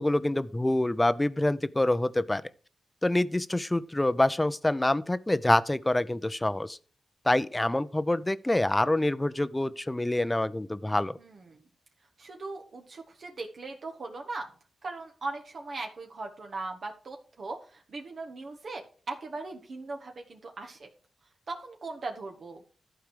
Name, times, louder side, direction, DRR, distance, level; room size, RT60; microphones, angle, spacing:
voice 1, 0.0-2.4 3.0-6.8 7.3-11.2, left 1 dB, 15° left, 0.7 m, -26 dB
voice 2, 11.2-11.6 12.2-14.5 14.8-20.9 21.5-22.6, right 3 dB, 60° right, 1.5 m, -39 dB
11.5 x 4.7 x 6.6 m
cardioid pair, 60°, 0 cm